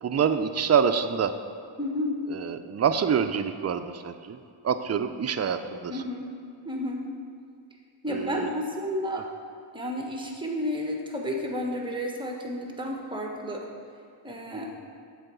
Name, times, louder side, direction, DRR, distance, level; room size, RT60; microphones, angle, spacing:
voice 1, 0.0-1.4 2.3-4.4 4.6-6.0 8.1-8.5, right 7 dB, 35° right, 9 dB, 0.4 m, -26 dB
voice 2, 1.8-2.2 5.9-6.3 6.6-7.0 8.0-9.2 9.7-13.7 14.2-14.7, left 1 dB, 10° right, 0 dB, 1.2 m, -31 dB
8.0 x 4.0 x 6.8 m, 2.3 s
cardioid pair, 60°, 49 cm